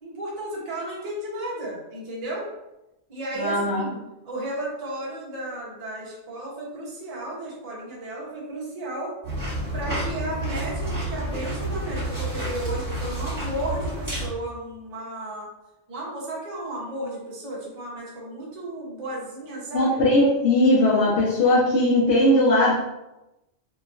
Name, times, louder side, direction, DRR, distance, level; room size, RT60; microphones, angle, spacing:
voice 1, 0.0-2.5 3.1-4.0 4.2-9.2 9.7-15.5 15.9-20.0, right 1 dB, 40° right, -4 dB, 0.7 m, -34 dB
voice 2, 3.4-3.9 19.7-22.7, left 1 dB, 75° left, -8 dB, 1.0 m, -19 dB
sound 1, 9.2-14.3, right 1 dB, 20° right, 1.1 m, -29 dB
2.9 x 2.4 x 2.4 m, 0.95 s
omnidirectional pair, 1.3 m